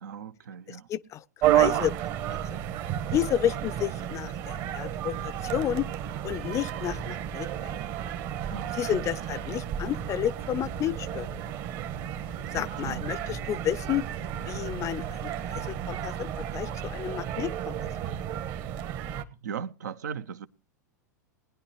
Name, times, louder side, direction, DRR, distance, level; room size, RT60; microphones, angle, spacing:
voice 1, 0.0-0.9 8.5-9.0 12.5-13.0 19.4-20.5, right 7 dB, 70° right, 0.8 m, -38 dB
voice 2, 0.7-1.9 2.3-2.4 3.1-5.9 6.2-7.7 8.7-11.3 12.5-14.0 14.4-17.8, left 11 dB, 30° left, 0.6 m, -31 dB
sound 1, 1.4-19.2, right 10 dB, 45° right, 1.4 m, -32 dB
20.5 x 10.5 x 3.1 m
figure-of-eight pair, 95°, 10 cm